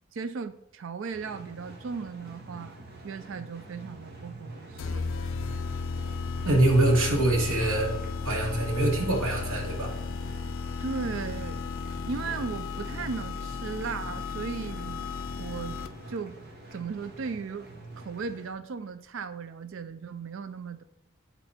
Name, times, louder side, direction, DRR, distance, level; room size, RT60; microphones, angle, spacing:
voice 1, 0.1-5.1 10.8-11.7 12.1-15.0 15.4-15.8 16.1-16.4 16.7-17.7 18.0-20.8, right 5 dB, 65° right, 11 dB, 0.4 m, -36 dB
sound 1, 1.1-18.5, right 2 dB, 50° right, 1.2 m, -47 dB
sound 2, 4.8-16.2, left 4 dB, 70° left, 0.4 m, -34 dB
voice 2, 6.4-7.9 8.2-9.9, right 1 dB, 90° right, -2 dB, 1.8 m, -24 dB
9.8 x 4.1 x 4.3 m, 0.82 s
head